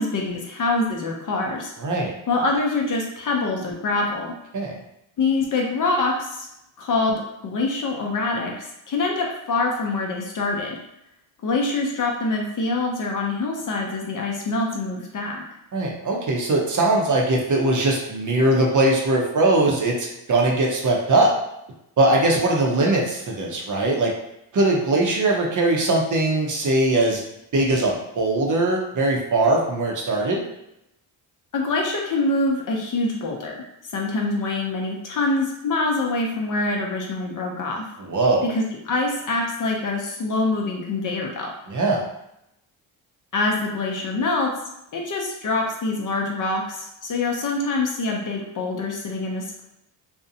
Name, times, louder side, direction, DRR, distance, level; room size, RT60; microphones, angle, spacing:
voice 1, 0.0-1.7 2.3-4.3 5.2-6.5 6.8-10.8 11.4-15.4 31.5-33.5 33.9-37.9 38.4-41.5 43.3-44.5 44.9-49.6, left 3 dB, 40° left, 0 dB, 0.6 m, -25 dB
voice 2, 1.8-2.1 4.5-4.7 15.7-21.3 22.0-24.1 24.5-27.2 27.5-30.4 38.0-38.5 41.7-42.0, right 2 dB, 40° right, -1 dB, 0.6 m, -20 dB
2.5 x 2.1 x 2.6 m, 0.83 s
cardioid pair, 85°, 48 cm